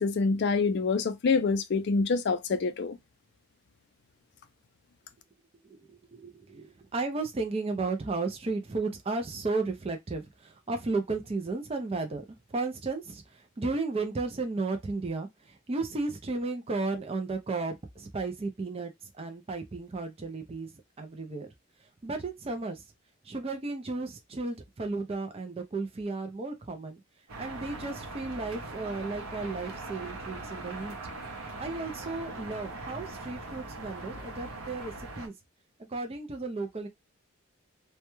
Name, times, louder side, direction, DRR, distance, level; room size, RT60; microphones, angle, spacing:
voice 1, 0.0-3.0, left 4 dB, 50° left, 0.4 m, -26 dB
voice 2, 6.1-12.2 12.5-13.2 13.6-18.9 19.2-20.7 21.0-21.5 22.0-22.8 23.3-27.0 27.4-31.0 31.6-35.3 35.9-36.9, right 3 dB, 25° right, 0.4 m, -34 dB
sound 1, 27.3-35.3, right 2 dB, 80° right, 0.7 m, -41 dB
2.2 x 2.1 x 2.9 m
head